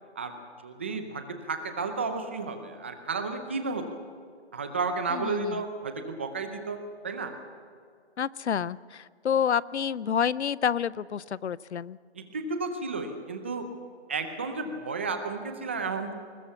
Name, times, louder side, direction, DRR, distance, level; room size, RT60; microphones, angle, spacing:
voice 1, 0.6-4.0 4.5-7.3 12.1-13.7 14.1-16.1, right 4 dB, 10° right, 7 dB, 0.6 m, -32 dB
voice 2, 5.1-5.6 8.2-12.0, left 8 dB, 80° left, 21 dB, 0.6 m, -29 dB
20.5 x 20.0 x 7.1 m, 2.2 s
hypercardioid pair, 165°, 33 cm